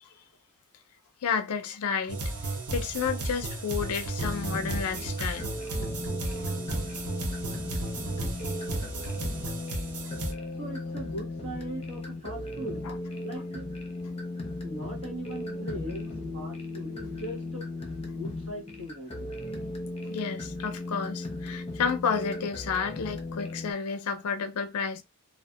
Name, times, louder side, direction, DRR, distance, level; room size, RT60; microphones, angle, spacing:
voice 1, 1.2-2.2 2.7-5.5 12.8-13.0 20.1-25.0, left 6 dB, 75° left, 0.4 m, -31 dB
sound 1, 2.1-10.3, right 2 dB, 85° right, 0.7 m, -34 dB
sound 2, 4.2-23.7, left 2 dB, 25° left, 0.7 m, -37 dB
voice 2, 10.6-12.8 13.2-13.7 14.6-17.7 18.0-19.3, right 1 dB, 65° right, 1.4 m, -40 dB
2.6 x 2.4 x 2.2 m
head